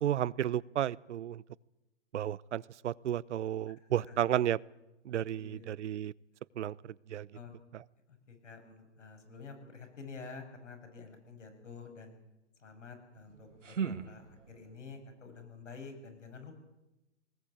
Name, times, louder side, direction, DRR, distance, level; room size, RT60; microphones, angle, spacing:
voice 1, 0.0-1.4 2.1-4.6 5.0-6.1 6.6-7.3, right 11 dB, 70° right, 23 dB, 0.8 m, -33 dB
voice 2, 3.7-4.2 5.3-5.7 7.3-7.6 8.1-12.1 12.6-16.5, left 4 dB, 80° left, 6 dB, 7.5 m, -49 dB
sound 1, 13.1-14.8, right 6 dB, 90° right, 1.9 m, -39 dB
20.5 x 19.0 x 8.7 m, 0.99 s
hypercardioid pair, 130°, 36 cm